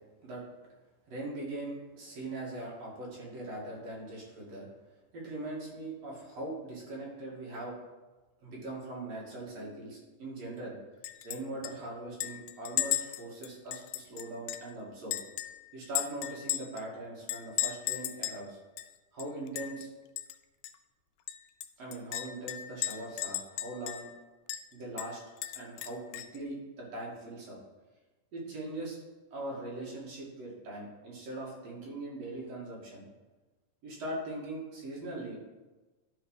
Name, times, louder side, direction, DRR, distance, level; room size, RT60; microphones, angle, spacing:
voice 1, 1.1-4.7 5.1-7.7 8.4-10.7 11.2-15.2 15.7-18.6 19.1-19.9 21.8-24.0 24.7-25.2 25.5-27.6 28.3-29.0 29.3-33.1 33.8-35.4, right 2 dB, 55° right, -4 dB, 3.2 m, -41 dB
Chink clink, 11.0-11.4 11.6-11.7 12.2-14.7 15.1-16.8 17.3-18.4 18.8-18.9 19.2-19.9 20.2-20.3 20.6-20.7 21.3-24.2 24.5-24.6 25.0-26.4, left 14 dB, 90° left, 1.6 m, -36 dB
11.5 x 5.3 x 4.9 m, 1.2 s
omnidirectional pair, 3.8 m